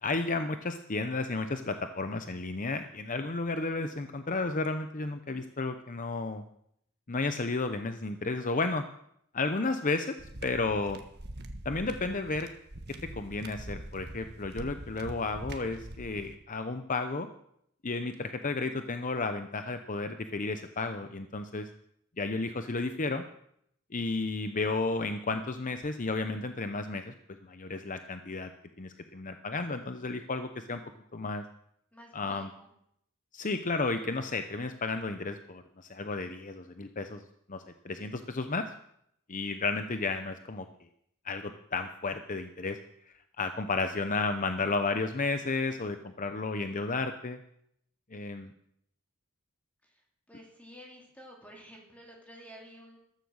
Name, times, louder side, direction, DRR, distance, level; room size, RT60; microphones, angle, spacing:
voice 1, 0.0-6.4 7.1-8.8 9.3-10.1 10.4-11.0 11.6-12.5 13.1-17.3 17.8-21.7 22.2-23.2 23.9-27.1 27.4-28.5 28.8-30.8 31.1-31.4 32.1-32.5 33.3-37.2 37.5-38.7 39.3-40.6 41.2-42.8 43.4-47.4 48.1-48.5, left 3 dB, 35° left, 8 dB, 0.8 m, -32 dB
sound 1, 10.2-16.3, right 1 dB, 45° right, 1.4 m, -44 dB
voice 2, 31.9-32.7 49.8-53.0, equal, 5° left, -1 dB, 3.1 m, -52 dB
14.5 x 13.0 x 6.4 m, 0.74 s
head